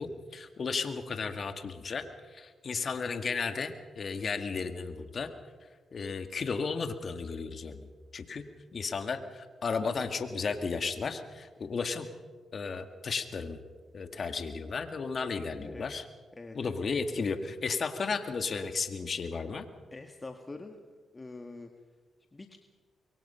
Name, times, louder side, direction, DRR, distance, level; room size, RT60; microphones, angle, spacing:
voice 1, 0.0-2.0 2.3-5.3 5.9-8.4 8.7-12.1 12.5-13.6 13.9-16.0 16.5-19.7, left 5 dB, 55° left, 8 dB, 2.0 m, -34 dB
voice 2, 16.3-16.8 19.9-20.8 21.1-21.7 22.3-22.6, left 3 dB, 30° left, 5 dB, 1.9 m, -44 dB
25.0 x 23.0 x 5.7 m, 1.4 s
supercardioid pair, 50°, 0 cm